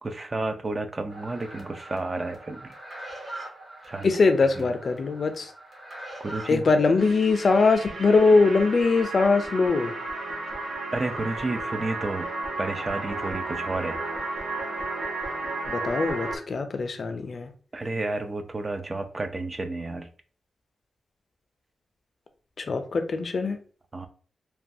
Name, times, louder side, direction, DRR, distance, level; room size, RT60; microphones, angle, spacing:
voice 1, 0.0-2.7 3.9-4.1 4.6-4.7 6.2-6.7 10.9-12.3 12.6-14.0 17.7-20.1 23.9-24.1, right 2 dB, 30° right, 7 dB, 0.3 m, -31 dB
sound 1, 1.1-7.0, right 1 dB, 45° right, 1.0 m, -42 dB
voice 2, 4.0-5.5 6.5-9.9 15.7-17.5 22.6-23.6, left 4 dB, 50° left, 7 dB, 0.4 m, -22 dB
sound 2, 7.0-16.4, right 2 dB, 70° right, 0.8 m, -33 dB
3.0 x 2.2 x 2.6 m, 0.43 s
wide cardioid pair, 105°, 0 cm